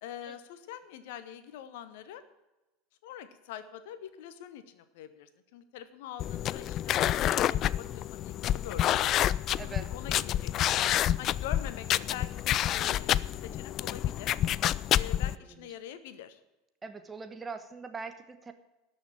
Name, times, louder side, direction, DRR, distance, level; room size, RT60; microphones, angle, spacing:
voice 1, 0.0-2.2 3.0-9.1 9.5-10.8 11.2-14.4 14.9-16.4, left 10 dB, 60° left, 13 dB, 1.0 m, -44 dB
sound 1, 6.2-15.4, left 12 dB, 40° left, 0.3 m, -28 dB
voice 2, 9.6-9.9 15.3-15.7 16.8-18.5, right 4 dB, 20° right, 9 dB, 1.3 m, -42 dB
13.0 x 6.5 x 8.9 m, 1.0 s
figure-of-eight pair, 80°, 0 cm